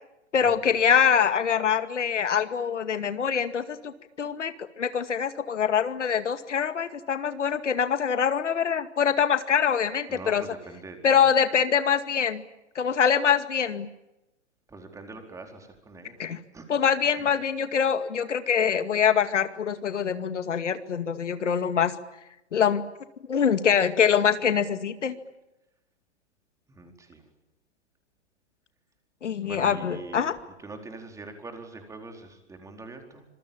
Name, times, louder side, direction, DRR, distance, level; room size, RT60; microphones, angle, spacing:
voice 1, 0.3-3.9 4.2-10.4 11.0-12.4 12.8-13.9 16.2-16.4 16.7-21.9 22.5-22.8 23.3-25.1 29.2-30.3, left 7 dB, 85° left, 10 dB, 2.3 m, -24 dB
voice 2, 10.1-11.2 14.7-16.2 16.5-16.6 17.1-17.3 26.7-27.2 29.4-30.3 30.6-33.3, right 3 dB, 10° right, 5 dB, 4.5 m, -43 dB
26.5 x 23.0 x 9.0 m, 0.92 s
hypercardioid pair, 140°, 35 cm